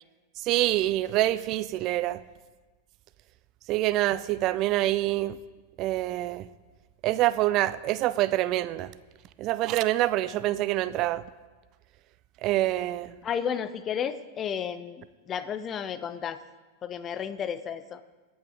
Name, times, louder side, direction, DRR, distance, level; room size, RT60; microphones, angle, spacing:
voice 1, 0.5-2.2 3.7-5.4 5.8-6.5 7.0-8.9 9.4-11.2 12.4-13.1, right 15 dB, 40° right, 16 dB, 0.5 m, -26 dB
voice 2, 13.2-16.4 16.8-18.0, left 8 dB, 25° left, 13 dB, 0.6 m, -32 dB
24.0 x 8.7 x 3.7 m, 1.3 s
figure-of-eight pair, 90°, 0 cm